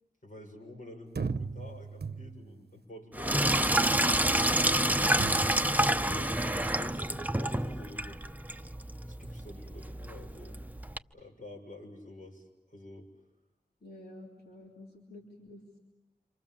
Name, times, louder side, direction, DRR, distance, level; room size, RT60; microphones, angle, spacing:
voice 1, 0.2-3.8 5.7-8.2 8.5-8.8 9.0-10.5 11.1-13.1, left 1 dB, 55° left, 2 dB, 6.6 m, -48 dB
sound 1, 1.2-2.6 5.2-5.8, right 5 dB, 85° right, 0.9 m, -36 dB
Sink (filling or washing), 3.1-11.0, right 1 dB, 10° right, 0.9 m, -28 dB
voice 2, 6.0-6.6 13.8-15.6, left 2 dB, 80° left, -1 dB, 3.8 m, -49 dB
28.0 x 26.5 x 7.3 m, 0.96 s
wide cardioid pair, 40°, 16 cm